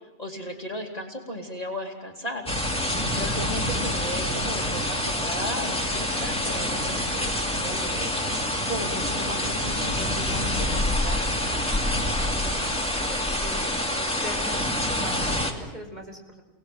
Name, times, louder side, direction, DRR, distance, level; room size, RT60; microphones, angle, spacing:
voice 1, 0.2-8.1 8.7-11.4, left 1 dB, 25° left, 0 dB, 2.6 m, -36 dB
sound 1, 2.5-15.5, left 1 dB, 5° left, 2.4 m, -27 dB
sound 2, 3.1-13.2, left 2 dB, 45° left, 3.8 m, -43 dB
voice 2, 12.4-13.7 14.2-16.4, equal, 30° right, 2 dB, 4.3 m, -42 dB
29.5 x 19.0 x 7.6 m, 1.1 s
omnidirectional pair, 1.5 m